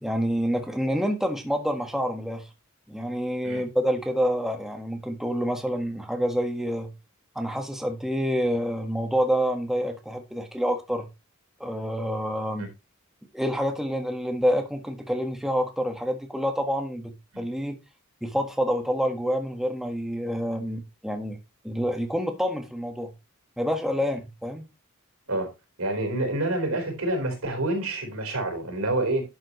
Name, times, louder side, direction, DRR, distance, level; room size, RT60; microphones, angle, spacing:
voice 1, 0.0-2.5 2.9-6.9 7.3-11.1 11.6-12.7 13.3-17.8 18.2-21.4 21.6-23.1 23.6-24.7, equal, ahead, 1.5 m, -27 dB
voice 2, 25.8-29.2, right 2 dB, 80° right, 4.3 m, -27 dB
11.5 x 7.6 x 3.1 m
head